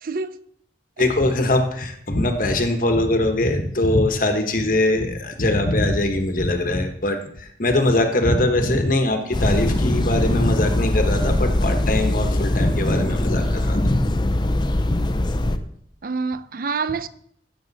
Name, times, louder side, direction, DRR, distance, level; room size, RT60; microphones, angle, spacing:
voice 1, 0.0-0.4 1.0-1.1 16.0-17.1, right 4 dB, 50° right, 0.5 m, -27 dB
voice 2, 1.0-14.1 14.5-14.6 15.5-15.6, left 1 dB, 50° left, 1.2 m, -21 dB
sound 1, 9.3-15.6, left 1 dB, 25° left, 0.6 m, -22 dB
16.0 x 6.5 x 4.1 m
head